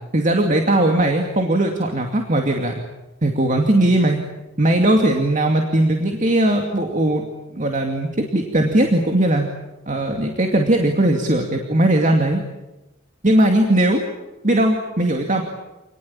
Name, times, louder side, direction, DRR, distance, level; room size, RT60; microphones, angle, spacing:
voice 1, 0.1-2.8 3.2-4.2 4.6-7.2 7.5-9.5 9.9-12.4 13.2-14.0 14.4-15.4, right 1 dB, 40° right, 3 dB, 2.5 m, -18 dB
28.0 x 20.5 x 8.8 m, 1.0 s
head